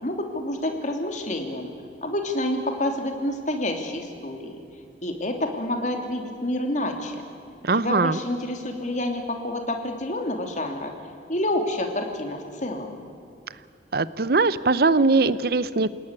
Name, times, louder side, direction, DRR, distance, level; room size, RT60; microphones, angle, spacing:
voice 1, 0.0-1.7 2.0-4.6 5.0-7.2 7.8-10.9 11.3-13.0, left 1 dB, 45° left, 4 dB, 3.0 m, -28 dB
voice 2, 7.6-8.2 13.9-15.9, right 3 dB, 60° right, 16 dB, 0.7 m, -21 dB
28.0 x 18.0 x 9.8 m, 2.4 s
head